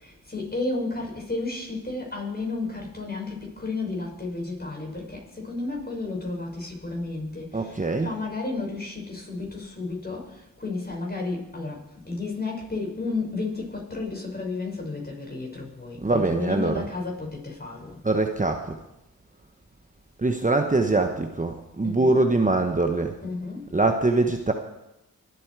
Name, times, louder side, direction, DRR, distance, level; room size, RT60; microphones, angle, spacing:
voice 1, 0.0-10.3 10.6-17.9 21.8-22.2 23.2-23.6, left 3 dB, 25° left, 0 dB, 6.0 m, -32 dB
voice 2, 7.5-8.1 16.0-16.9 18.0-18.8 20.2-23.1 23.7-24.5, right 2 dB, 20° right, 5 dB, 1.1 m, -23 dB
24.0 x 8.5 x 4.8 m, 0.92 s
cardioid pair, 50°, 35 cm